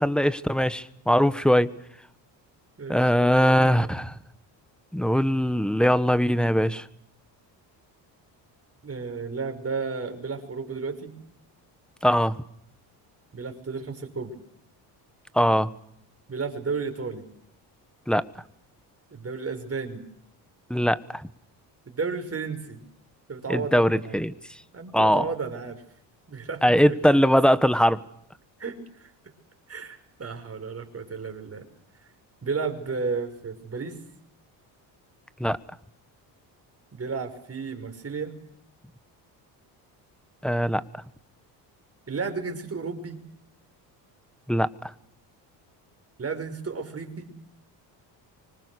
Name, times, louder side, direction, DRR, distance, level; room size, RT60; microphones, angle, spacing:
voice 1, 0.0-1.7 2.9-4.1 4.9-6.8 12.0-12.3 15.3-15.7 18.1-18.2 20.7-21.2 23.5-24.3 24.9-25.3 26.6-28.0 35.4-35.6 40.4-40.8 44.5-44.9, equal, ahead, 14 dB, 1.5 m, -21 dB
voice 2, 2.8-3.9 8.8-11.1 13.3-14.3 16.3-17.2 19.1-20.1 21.9-22.8 23.3-24.2 24.7-25.8 26.3-27.2 28.6-29.1 29.7-31.6 32.4-33.9 36.9-38.3 42.1-43.2 46.2-47.3, right 4 dB, 30° right, 6 dB, 6.0 m, -33 dB
25.5 x 25.0 x 6.5 m, 0.72 s
supercardioid pair, 80°, 45 cm